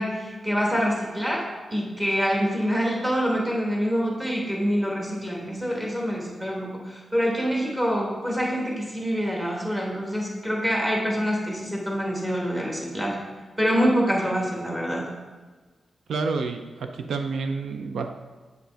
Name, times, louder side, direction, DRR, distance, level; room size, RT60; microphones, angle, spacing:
voice 1, 0.0-13.2 13.6-15.1, equal, 10° right, -2 dB, 1.2 m, -26 dB
voice 2, 16.1-18.1, right 4 dB, 80° right, 6 dB, 0.4 m, -29 dB
7.8 x 5.1 x 3.4 m, 1.3 s
wide cardioid pair, 175°, 0 cm